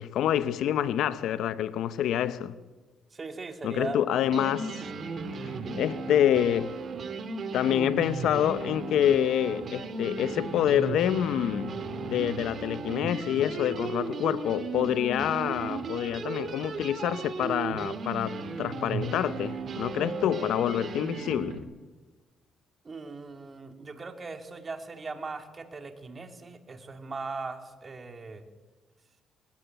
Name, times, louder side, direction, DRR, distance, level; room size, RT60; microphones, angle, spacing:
voice 1, 0.0-2.5 3.6-4.8 5.7-6.8 7.5-11.8 12.1-21.6, left 10 dB, 80° left, 0.9 m, -27 dB
voice 2, 3.1-4.0 22.8-28.4, right 4 dB, 35° right, 2.8 m, -39 dB
sound 1, 3.9-4.0 4.3-21.6, right 4 dB, 50° right, 2.8 m, -35 dB
20.0 x 18.0 x 9.1 m
cardioid pair, 90°, 0 cm